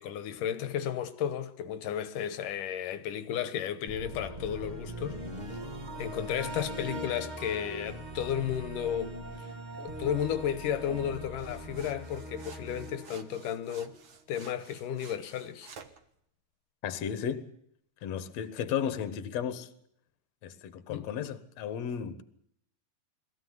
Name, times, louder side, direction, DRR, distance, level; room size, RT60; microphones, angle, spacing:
voice 1, 0.0-5.6 6.0-9.5 9.8-14.0 14.3-15.7 20.9-21.1, left 9 dB, 75° left, 2.6 m, -33 dB
sound 1, 3.9-14.0, right 1 dB, 20° right, 1.3 m, -41 dB
sound 2, 11.4-16.0, right 6 dB, 50° right, 1.5 m, -52 dB
voice 2, 16.8-17.5 18.0-19.7 20.4-22.2, left 8 dB, 55° left, 2.3 m, -34 dB
22.0 x 15.5 x 9.4 m
omnidirectional pair, 4.0 m